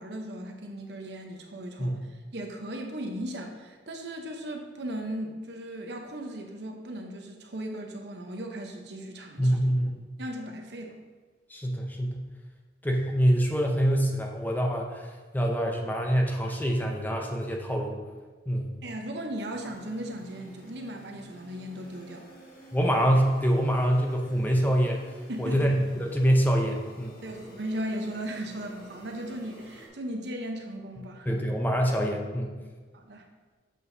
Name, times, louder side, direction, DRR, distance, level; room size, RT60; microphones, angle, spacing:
voice 1, 0.0-2.0 2.3-9.6 10.2-11.0 18.8-22.3 25.3-25.8 27.2-31.3 32.9-33.2, right 1 dB, 65° right, 2 dB, 0.8 m, -37 dB
voice 2, 9.4-10.0 11.5-12.2 12.8-18.0 18.5-18.7 22.7-25.0 25.4-27.2 31.3-32.5, equal, 10° left, 1 dB, 0.6 m, -25 dB
sound 1, 19.5-29.9, right 1 dB, 50° left, 1.6 m, -51 dB
7.5 x 6.2 x 2.7 m, 1.4 s
head